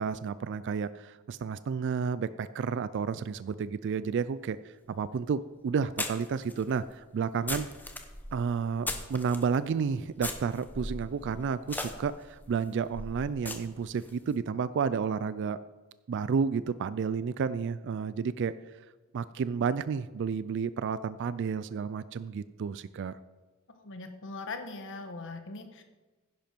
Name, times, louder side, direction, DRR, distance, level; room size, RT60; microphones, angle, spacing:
voice 1, 0.0-7.7 8.3-15.6 16.1-18.5 19.1-23.2, right 6 dB, 55° right, 15 dB, 0.3 m, -31 dB
sound 1, 4.9-5.0 6.0-9.5 10.2-14.1, left 2 dB, 10° left, 0.9 m, -39 dB
voice 2, 23.7-25.8, left 3 dB, 55° left, 7 dB, 1.3 m, -40 dB
11.0 x 10.5 x 4.4 m, 1.2 s
head